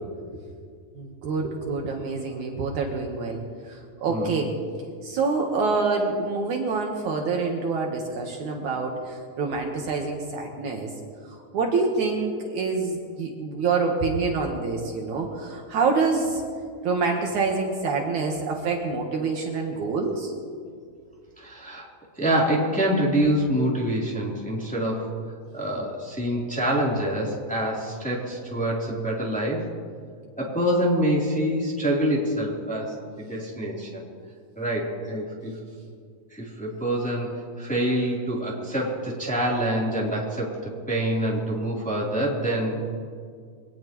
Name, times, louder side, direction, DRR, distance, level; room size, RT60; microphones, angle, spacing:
voice 1, 1.0-4.5 5.0-10.9 11.5-16.4 16.8-20.3, right 4 dB, 65° right, 1 dB, 2.5 m, -26 dB
voice 2, 4.1-4.4 21.4-21.9 22.2-25.1 25.5-29.7 30.4-34.0 34.6-35.5 36.3-37.3 37.6-42.8, right 1 dB, ahead, -5 dB, 2.9 m, -26 dB
24.0 x 18.5 x 3.1 m, 2.1 s
omnidirectional pair, 4.0 m